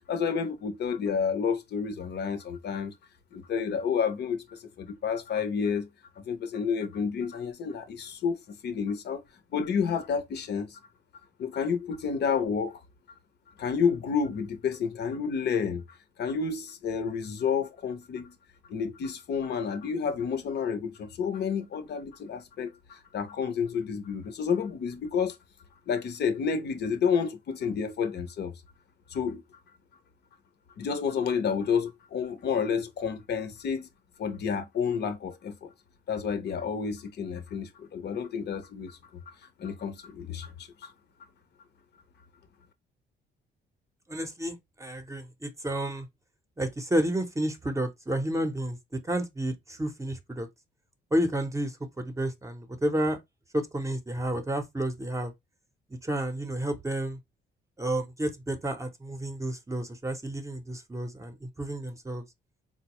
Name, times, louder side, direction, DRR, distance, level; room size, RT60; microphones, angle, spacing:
voice 1, 0.1-2.9 3.3-5.9 6.2-9.2 9.5-10.8 11.4-12.8 13.6-18.3 18.6-25.4 25.9-28.5 29.1-29.4 30.8-33.9 34.2-35.7 36.1-39.0 39.3-39.4 39.6-40.9, left 6 dB, 55° left, 0.7 m, -30 dB
voice 2, 44.1-46.1 46.6-48.8 49.0-50.5 51.1-53.2 53.5-55.3 55.9-57.2 57.8-62.2, right 1 dB, 15° right, 0.7 m, -31 dB
3.9 x 2.1 x 2.9 m
cardioid pair, 90°, 20 cm